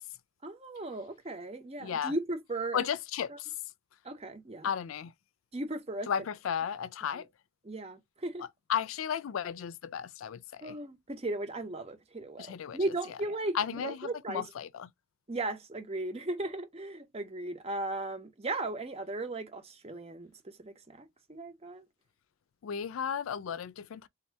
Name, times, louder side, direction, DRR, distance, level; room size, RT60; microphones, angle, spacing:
voice 1, 0.4-2.9 3.3-3.4 4.0-4.7 5.5-6.1 7.1-7.2 7.6-8.4 10.6-14.4 15.3-21.8, right 2 dB, 30° right, 0.8 m, -37 dB
voice 2, 1.8-2.1 2.7-3.5 4.6-5.1 6.1-7.3 8.4-10.8 12.4-12.8 13.5-14.9 22.6-24.1, left 8 dB, 90° left, 0.4 m, -34 dB
3.6 x 2.7 x 3.3 m
head